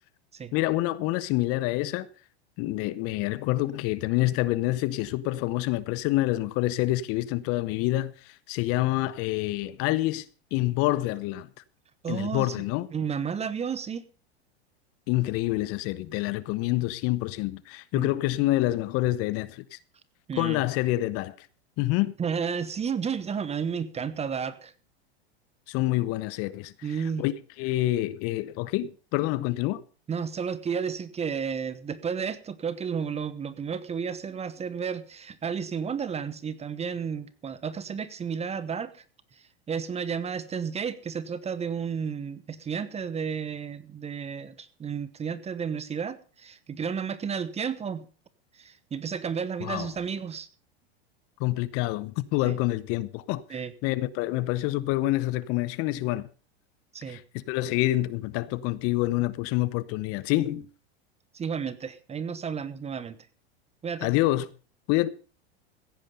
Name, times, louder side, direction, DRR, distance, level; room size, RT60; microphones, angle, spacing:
voice 1, 0.5-2.1 2.6-10.3 10.5-11.5 12.1-12.9 15.1-19.8 20.4-21.5 21.8-22.1 25.7-29.8 49.6-49.9 51.4-56.3 57.1-60.7 64.0-64.5 64.9-65.1, left 17 dB, 50° left, 0.9 m, -27 dB
voice 2, 12.0-12.5 12.9-14.0 17.9-18.1 20.3-20.6 22.2-24.7 26.8-27.2 30.1-39.0 39.7-48.0 48.6-50.5 52.4-52.6 53.5-53.7 56.9-57.2 61.3-63.2 63.8-64.1, right 6 dB, 20° right, 1.1 m, -32 dB
15.5 x 9.1 x 5.5 m
hypercardioid pair, 105°, 31 cm